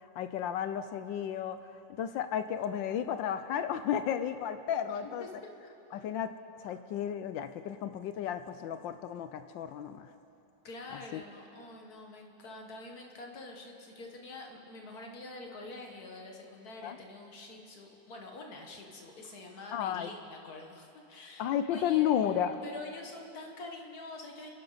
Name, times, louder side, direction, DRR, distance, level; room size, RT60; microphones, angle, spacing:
voice 1, 0.2-1.6 2.0-5.2 5.9-6.3 6.6-10.1 11.1-11.2 16.8-17.0 19.7-20.1 21.4-22.6, left 9 dB, 75° left, 11 dB, 1.2 m, -32 dB
voice 2, 4.9-5.3 5.9-6.1 10.6-22.4 22.6-24.5, left 2 dB, 50° left, 1 dB, 1.9 m, -46 dB
28.0 x 11.0 x 4.0 m, 2.9 s
omnidirectional pair, 2.2 m